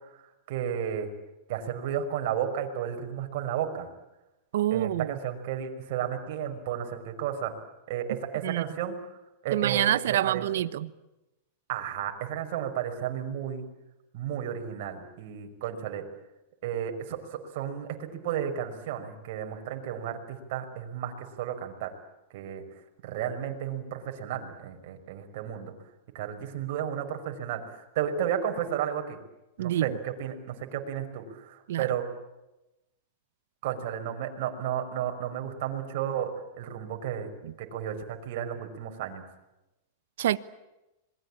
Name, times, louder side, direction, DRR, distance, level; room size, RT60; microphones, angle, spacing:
voice 1, 0.1-1.1 1.5-3.9 4.7-7.5 7.9-9.0 9.4-10.4 11.7-13.6 14.1-16.0 16.6-21.9 22.3-22.6 23.0-25.7 26.1-29.2 29.6-32.0 33.6-37.3 37.6-39.2, right 9 dB, 55° right, 5.8 m, -33 dB
voice 2, 4.5-5.2 8.4-8.6 9.5-10.9 29.6-30.0 31.7-31.9 37.4-37.5 40.2-40.4, right 12 dB, 75° right, 1.1 m, -27 dB
27.0 x 21.5 x 8.8 m
supercardioid pair, 145°, 0 cm